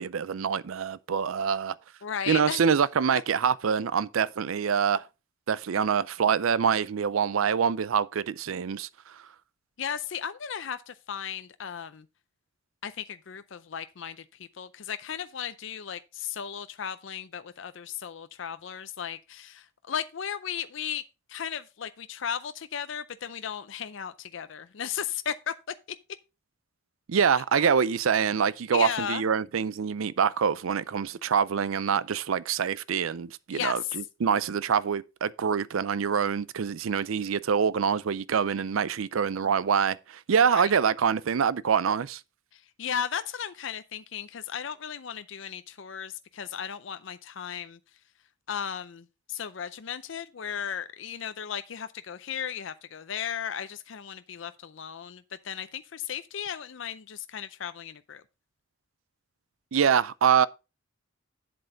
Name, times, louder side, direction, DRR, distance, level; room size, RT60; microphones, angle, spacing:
voice 1, 0.0-1.8 2.3-5.0 5.5-8.9 27.1-42.2 59.7-60.5, right 7 dB, 85° right, 0.5 m, -25 dB
voice 2, 2.0-2.6 9.8-12.1 12.8-21.0 21.3-25.5 27.6-27.7 28.7-29.2 33.5-34.0 40.5-40.7 42.5-47.8 48.5-58.2, left 8 dB, 65° left, 0.5 m, -35 dB
7.8 x 7.7 x 3.8 m
head